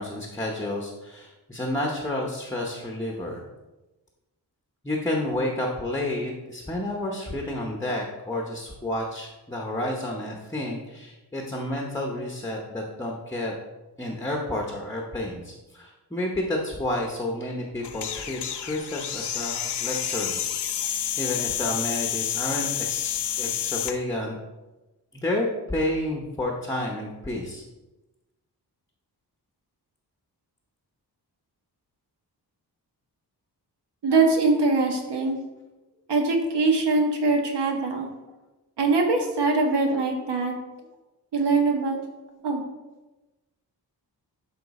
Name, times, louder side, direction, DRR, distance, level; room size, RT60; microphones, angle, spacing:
voice 1, 0.0-3.4 4.8-13.5 14.0-20.4 21.2-24.4 25.1-27.6, left 1 dB, 10° left, 0 dB, 0.8 m, -30 dB
sound 1, 17.8-24.0, left 10 dB, 80° left, 0.7 m, -29 dB
voice 2, 34.0-35.4 36.1-38.1 38.8-40.5 41.3-42.0 42.4-42.6, right 3 dB, 85° right, 2 dB, 1.6 m, -22 dB
12.0 x 4.4 x 4.1 m, 1.1 s
wide cardioid pair, 170°, 40 cm